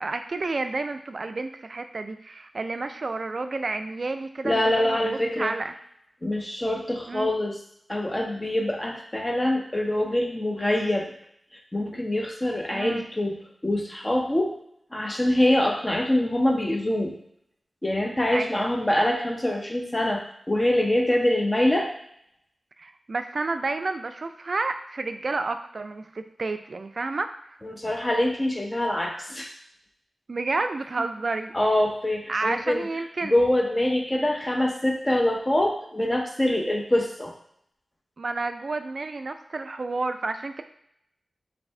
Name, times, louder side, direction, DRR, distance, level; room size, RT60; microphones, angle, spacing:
voice 1, 0.0-5.8 7.1-7.3 12.7-13.1 18.3-18.7 22.8-27.6 30.3-31.5 32.3-33.4 38.2-40.6, right 3 dB, 55° right, 8 dB, 0.3 m, -30 dB
voice 2, 4.4-5.5 6.2-7.6 7.9-11.1 11.7-14.6 14.9-17.2 17.8-21.9 27.6-29.5 31.5-32.9 33.3-37.3, left 1 dB, 20° left, 2 dB, 0.6 m, -24 dB
3.2 x 2.7 x 4.3 m, 0.71 s
wide cardioid pair, 75°, 0 cm